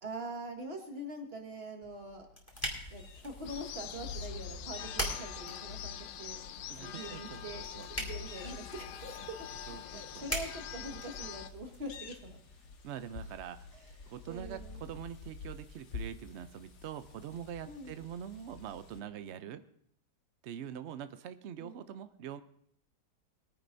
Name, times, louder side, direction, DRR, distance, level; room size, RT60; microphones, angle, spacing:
voice 1, 0.0-2.3 2.9-9.5 9.8-12.4 13.7-14.9 17.6-17.9 21.6-21.9, right 1 dB, 35° right, 3 dB, 1.7 m, -44 dB
sound 1, 1.8-11.8, equal, 10° left, 2.2 m, -43 dB
sound 2, 2.5-19.0, left 4 dB, 50° left, 1.1 m, -48 dB
sound 3, 3.4-11.5, left 11 dB, 80° left, 1.2 m, -45 dB
voice 2, 6.7-7.9 9.7-10.2 12.8-13.7 14.1-19.6 20.4-22.4, right 9 dB, 90° right, 11 dB, 0.6 m, -44 dB
20.5 x 9.8 x 2.6 m, 0.69 s
omnidirectional pair, 1.8 m